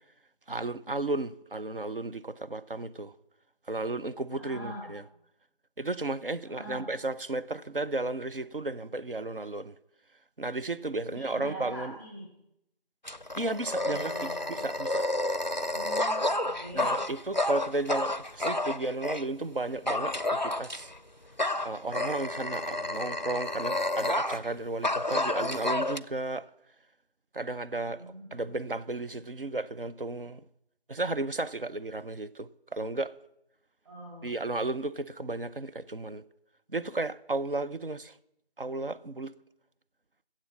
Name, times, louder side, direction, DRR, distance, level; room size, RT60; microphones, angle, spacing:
voice 1, 0.5-3.1 3.7-5.0 5.8-9.7 10.4-11.9 13.4-15.1 16.7-20.9 21.6-26.5 27.3-30.4 30.9-33.1 34.2-36.2 36.7-38.1 38.6-39.3, right 2 dB, 60° right, 0.6 m, -34 dB
voice 2, 4.4-4.9 6.4-6.9 11.1-12.3 13.9-14.7 15.7-16.9 28.0-28.5 33.8-34.3, equal, 30° right, 3.0 m, -43 dB
Dog, 13.0-19.3 19.9-21.0 21.4-24.5 24.8-26.0, left 1 dB, 50° left, 0.4 m, -30 dB
16.5 x 7.5 x 6.2 m
figure-of-eight pair, 175°, 31 cm